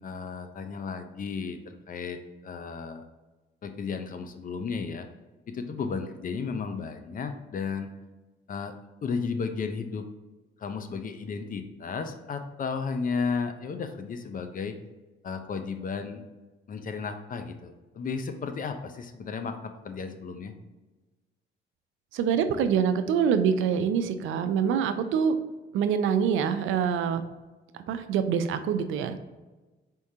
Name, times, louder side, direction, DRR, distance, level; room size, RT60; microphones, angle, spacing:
voice 1, 0.0-3.1 3.6-5.1 5.5-7.9 8.5-8.7 9.0-10.1 10.6-14.7 15.2-16.2 16.7-20.5, left 5 dB, 45° left, 7 dB, 0.5 m, -34 dB
voice 2, 22.1-25.3 25.7-27.2 27.7-29.2, right 7 dB, 80° right, 10 dB, 0.4 m, -25 dB
4.4 x 3.6 x 2.7 m, 1.2 s
cardioid pair, 90°, 20 cm